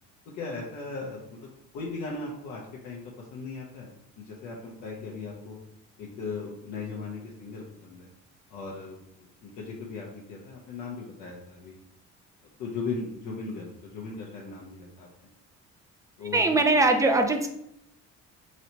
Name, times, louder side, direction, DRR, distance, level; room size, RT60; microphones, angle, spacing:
voice 1, 0.3-1.5 1.7-5.6 6.0-8.1 8.5-11.7 12.6-15.1 16.2-16.4, left 4 dB, 80° left, -3 dB, 0.8 m, -38 dB
voice 2, 16.3-17.5, right 2 dB, 10° right, 4 dB, 0.4 m, -21 dB
4.1 x 3.1 x 2.8 m, 0.77 s
cardioid pair, 110°, 30 cm